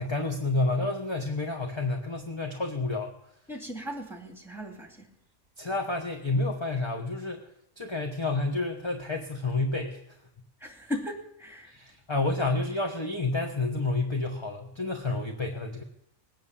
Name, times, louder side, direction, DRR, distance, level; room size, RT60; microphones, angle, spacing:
voice 1, 0.0-3.1 5.6-7.4 7.8-10.0 11.7-15.8, left 2 dB, 20° left, 2 dB, 1.3 m, -29 dB
voice 2, 3.5-5.1 10.6-11.7, equal, ahead, 3 dB, 2.5 m, -37 dB
19.5 x 9.2 x 7.4 m, 0.78 s
omnidirectional pair, 1.4 m